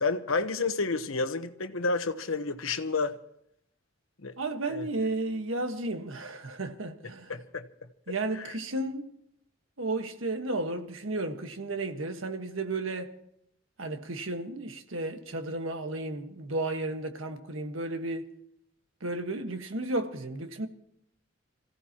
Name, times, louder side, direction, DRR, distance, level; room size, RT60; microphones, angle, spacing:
voice 1, 0.0-3.2 4.2-4.3 4.7-4.9 7.3-7.6 8.3-8.5, left 3 dB, 90° left, 1.1 m, -30 dB
voice 2, 4.4-7.3 8.1-9.1 9.8-13.1 13.8-18.3 19.0-20.7, right 2 dB, 75° right, 1.5 m, -33 dB
26.5 x 16.0 x 3.0 m
head